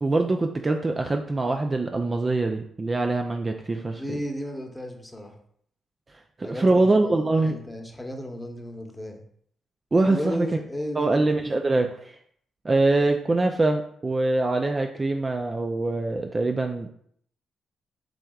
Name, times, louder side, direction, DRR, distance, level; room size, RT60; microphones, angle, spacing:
voice 1, 0.0-4.2 6.4-7.6 9.9-10.5 11.0-12.2 12.6-16.9, right 2 dB, 30° right, 4 dB, 0.4 m, -23 dB
voice 2, 3.9-5.4 6.4-9.2 10.1-11.2, equal, 10° left, 3 dB, 0.9 m, -34 dB
6.0 x 3.4 x 2.4 m, 0.64 s
supercardioid pair, 65°, 0 cm